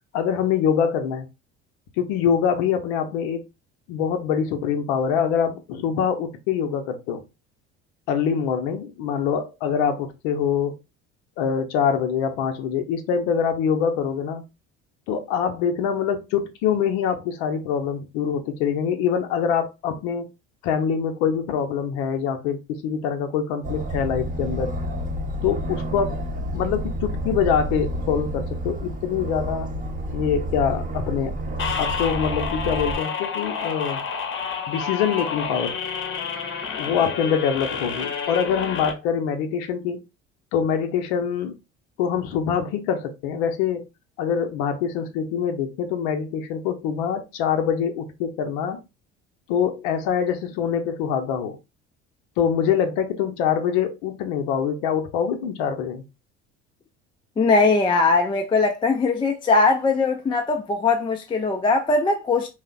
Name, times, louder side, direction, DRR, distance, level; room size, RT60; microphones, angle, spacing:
voice 1, 0.1-1.3 2.0-3.4 3.9-7.2 8.1-10.7 11.4-14.4 15.1-20.3 20.6-24.7 25.4-26.2 26.5-29.7 30.1-31.3 31.8-34.0 34.7-35.8 36.8-40.0 40.5-41.5 42.0-43.9 44.2-48.8 49.5-51.6 52.4-56.0, left 7 dB, 75° left, 0.6 m, -24 dB
Aircraft, 23.6-33.0, right 1 dB, 25° right, 0.7 m, -29 dB
sound 1, 31.6-38.9, left 6 dB, 35° left, 0.8 m, -29 dB
voice 2, 57.4-62.5, left 3 dB, 15° left, 0.3 m, -20 dB
2.7 x 2.0 x 2.4 m
hypercardioid pair, 70°, 34 cm